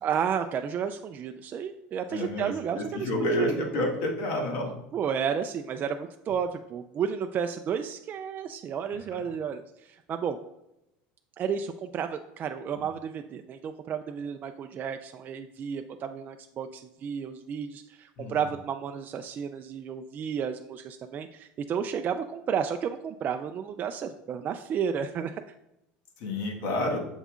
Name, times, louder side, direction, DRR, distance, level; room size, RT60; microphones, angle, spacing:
voice 1, 0.0-3.8 4.9-10.4 11.4-25.4, right 7 dB, 35° right, 7 dB, 0.3 m, -32 dB
voice 2, 2.1-4.7 9.1-9.2 12.7-12.8 18.2-18.4 26.2-27.1, left 1 dB, 70° left, 0 dB, 1.5 m, -30 dB
7.1 x 5.4 x 2.4 m, 0.86 s
supercardioid pair, 105°, 5 cm